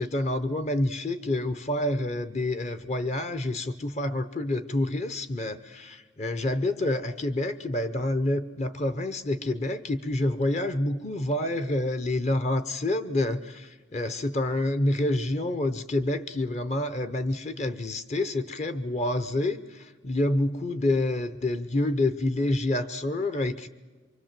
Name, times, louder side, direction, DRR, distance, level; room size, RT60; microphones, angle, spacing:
voice 1, 0.0-23.7, left 1 dB, 35° left, 12 dB, 0.7 m, -28 dB
25.0 x 24.0 x 7.4 m, 1.3 s
head